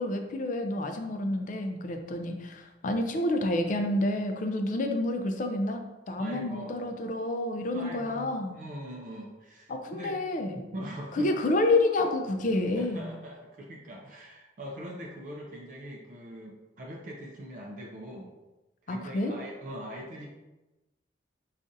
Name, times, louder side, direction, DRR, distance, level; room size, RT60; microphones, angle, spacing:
voice 1, 0.0-8.6 9.7-10.6 11.1-13.1 18.9-19.3, left 2 dB, 45° left, 5 dB, 0.4 m, -29 dB
voice 2, 6.2-6.9 7.7-10.2 10.7-11.3 12.8-18.3 18.8-20.3, equal, 45° right, -1 dB, 0.4 m, -42 dB
5.2 x 2.4 x 2.6 m, 1.1 s
head